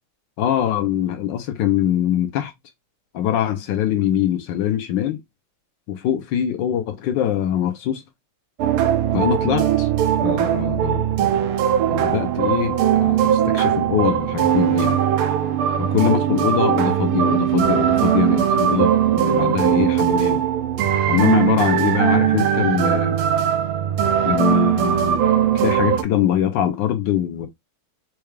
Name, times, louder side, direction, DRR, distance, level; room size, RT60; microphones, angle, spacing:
voice 1, 0.4-2.5 3.1-5.2 5.9-8.0 9.1-9.9 10.2-11.1 11.9-15.0 15.8-20.4 21.1-23.2 24.2-25.3 25.5-27.5, left 10 dB, 70° left, 1.1 m, -23 dB
sound 1, 8.6-26.0, right 10 dB, 80° right, 1.5 m, -19 dB
4.5 x 2.3 x 3.1 m
omnidirectional pair, 2.4 m